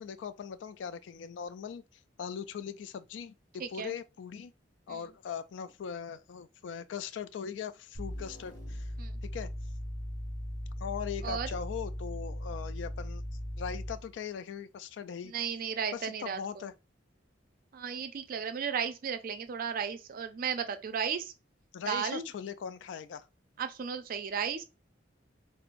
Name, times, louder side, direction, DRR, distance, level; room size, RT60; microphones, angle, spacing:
voice 1, 0.0-4.5 4.9-8.9 9.2-9.5 10.8-13.2 13.6-15.3 15.9-16.7 21.7-23.3, left 7 dB, 70° left, 0.3 m, -40 dB
voice 2, 3.6-3.9 4.9-5.0 9.0-9.2 11.2-11.5 15.2-16.7 17.7-21.3 21.9-22.3 23.6-24.6, right 7 dB, 50° right, 0.4 m, -34 dB
sound 1, 7.9-14.1, left 1 dB, 55° left, 1.2 m, -38 dB
4.5 x 2.0 x 2.5 m
head